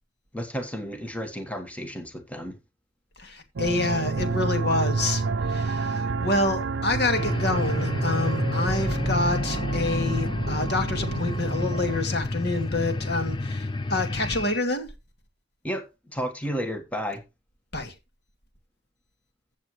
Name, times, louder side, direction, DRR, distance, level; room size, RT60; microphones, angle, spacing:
voice 1, 0.3-2.5 15.6-17.2, equal, 5° left, 1.4 m, -32 dB
voice 2, 3.2-14.9 17.7-17.9, left 2 dB, 55° left, 2.4 m, -28 dB
sound 1, 3.6-12.0, right 4 dB, 70° right, 0.5 m, -29 dB
sound 2, 7.2-14.6, left 2 dB, 25° left, 0.5 m, -29 dB
15.5 x 7.4 x 3.1 m
head